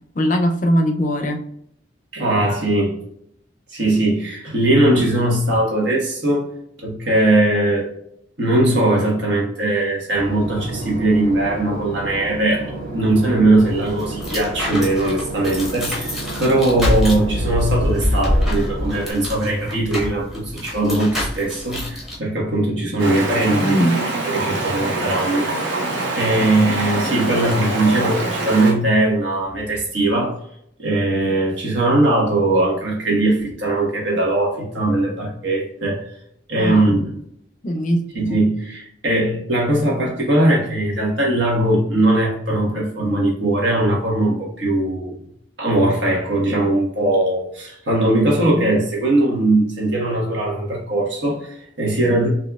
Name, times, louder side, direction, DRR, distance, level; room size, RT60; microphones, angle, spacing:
voice 1, 0.1-1.4 23.6-24.0 36.6-37.0 37.6-38.4, equal, 40° left, 4 dB, 0.5 m, -20 dB
voice 2, 2.1-3.0 3.7-6.5 6.8-7.9 8.4-23.8 24.2-25.8 26.1-30.4 30.8-36.0 36.5-37.0 38.1-45.2 45.6-52.3, right 1 dB, 70° right, -3 dB, 1.3 m, -20 dB
Boat Water vehicle / Engine, 10.1-19.1, right 2 dB, 50° right, 1.4 m, -32 dB
sound 1, 13.6-22.2, left 1 dB, ahead, 0.8 m, -25 dB
Stream, 23.0-28.7, right 2 dB, 85° right, 1.0 m, -24 dB
4.1 x 2.7 x 2.3 m, 0.72 s
head